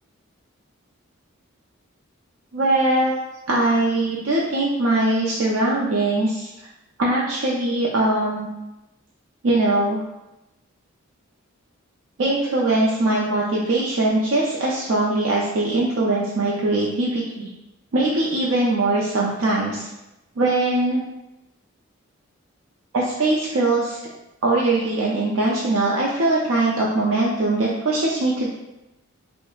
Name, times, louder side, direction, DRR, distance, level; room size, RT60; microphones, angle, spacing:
voice 1, 2.5-3.1 3.5-6.5 7.0-8.5 9.4-10.0 12.2-17.5 17.9-19.9 20.4-21.0 22.9-24.0 24.4-28.5, right 2 dB, 70° right, -4 dB, 0.4 m, -21 dB
4.7 x 2.0 x 2.3 m, 0.96 s
head